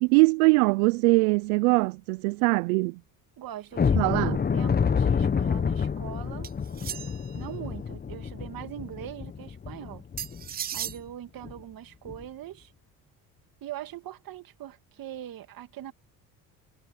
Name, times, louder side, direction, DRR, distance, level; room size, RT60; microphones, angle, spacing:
voice 1, 0.0-3.0 4.0-4.4, right 27 dB, 90° right, 0.5 m, -22 dB
voice 2, 3.4-6.5 7.3-10.0 10.7-12.7 13.6-15.9, right 12 dB, 55° right, 2.1 m, -41 dB
sound 1, 3.7-10.5 10.9-11.0 11.4-11.6 12.1-12.2, left 6 dB, 25° left, 0.9 m, -28 dB
sound 2, 6.4-7.4 10.2-11.0, right 9 dB, 25° right, 0.3 m, -35 dB
supercardioid pair, 75°, 40 cm